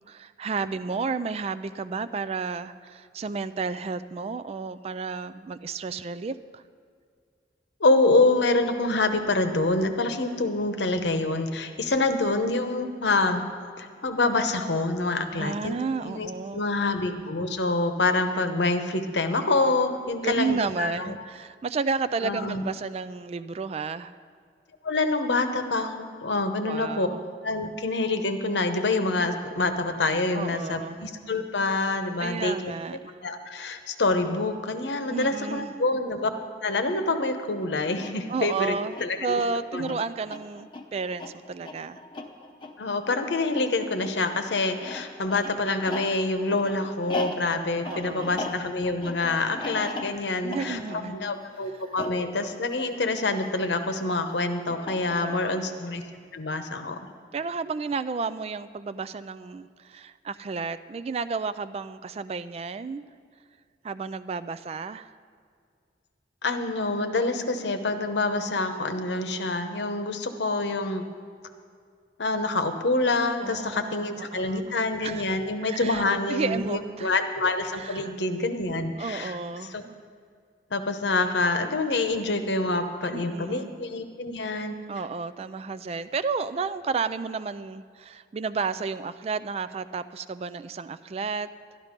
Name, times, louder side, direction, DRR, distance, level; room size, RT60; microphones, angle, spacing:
voice 1, 0.1-6.6 15.4-16.6 20.2-24.1 26.6-27.3 30.3-31.1 32.2-33.1 35.1-35.7 38.0-38.1 38.3-42.0 47.9-48.3 50.4-51.2 55.2-55.6 57.3-63.0 63.8-65.1 73.4-74.7 75.0-75.2 75.6-76.0 76.3-77.1 77.8-78.1 79.0-80.0 83.1-83.8 84.9-91.5, right 4 dB, 35° right, 13 dB, 0.3 m, -32 dB
voice 2, 7.8-13.4 13.8-21.1 22.2-22.6 24.8-27.1 27.4-32.5 33.2-36.3 36.6-39.4 39.7-39.9 42.8-56.0 56.3-57.0 66.4-71.0 72.2-79.4 79.7-79.8 80.7-84.7, left 2 dB, 75° left, 7 dB, 0.9 m, -26 dB
sound 1, 37.9-53.6 54.7-55.5, left 2 dB, 25° left, 0.8 m, -39 dB
12.5 x 11.5 x 5.2 m, 2.2 s
head